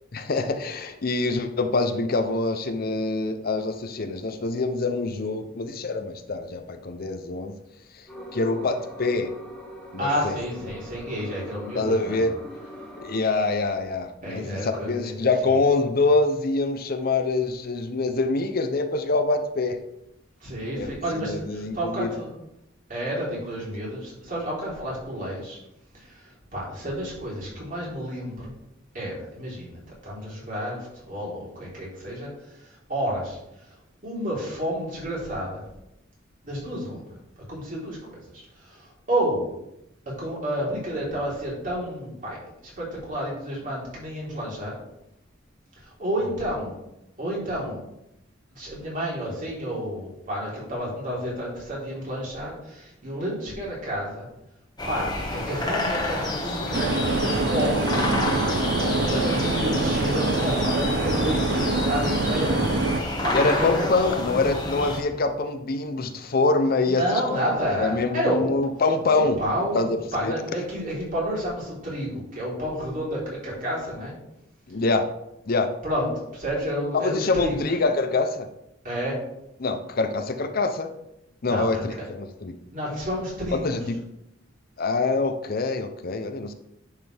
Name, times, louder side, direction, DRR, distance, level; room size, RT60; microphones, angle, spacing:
voice 1, 0.1-7.5 8.3-9.3 9.9-10.3 11.3-11.4 11.7-12.4 13.0-19.8 20.8-20.9 21.2-22.1 58.8-59.3 63.3-67.4 67.7-69.4 69.7-70.0 70.2-70.3 74.7-75.0 75.5-75.7 76.9-78.5 79.6-80.9 81.4-82.6 83.6-84.0 84.8-86.5, left 3 dB, 50° left, 8 dB, 0.6 m, -25 dB
sound 1, 8.1-13.2, equal, ahead, 2.7 m, -42 dB
voice 2, 10.0-12.2 14.2-15.6 20.4-22.3 22.9-25.6 25.9-28.5 28.9-32.3 32.6-33.4 34.0-35.6 36.4-37.1 37.5-39.4 40.1-44.7 45.8-46.8 47.2-47.8 48.5-54.3 54.8-57.9 59.0-64.1 66.8-68.4 69.1-74.1 75.8-77.6 78.8-79.2 81.4-82.1 82.7-83.8, equal, 45° right, -5 dB, 3.6 m, -30 dB
sound 2, 54.8-65.0, left 2 dB, 20° left, 1.4 m, -29 dB
sound 3, 56.7-63.0, right 3 dB, 60° right, 0.5 m, -25 dB
10.0 x 6.6 x 3.4 m, 0.84 s
head